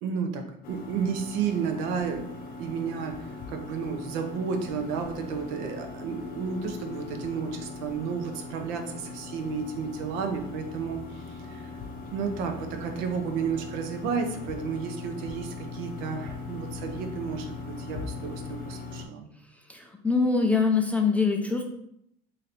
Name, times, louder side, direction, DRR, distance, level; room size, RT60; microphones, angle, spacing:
voice 1, 0.0-2.3 2.6-3.2 3.5-11.7 12.1-19.3, right 6 dB, 75° right, 5 dB, 0.7 m, -32 dB
sound 1, 0.6-19.1, left 4 dB, 45° left, 0.6 m, -40 dB
voice 2, 19.7-21.6, left 4 dB, 5° left, 2 dB, 0.3 m, -24 dB
3.2 x 2.8 x 4.0 m, 0.75 s
cardioid pair, 130°, 20 cm